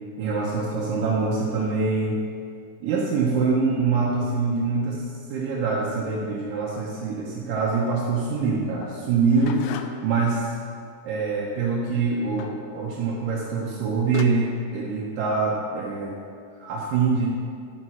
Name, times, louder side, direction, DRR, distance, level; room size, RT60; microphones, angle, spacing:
voice 1, 0.2-2.2 2.8-5.0 5.3-10.6 11.0-16.2 16.6-17.3, right 4 dB, 75° right, -4 dB, 2.7 m, -24 dB
sound 1, 8.8-10.2 12.4-12.7 13.7-13.8 14.1-14.3, left 10 dB, 90° left, 2.4 m, -37 dB
11.0 x 7.8 x 5.7 m, 2.3 s
omnidirectional pair, 4.0 m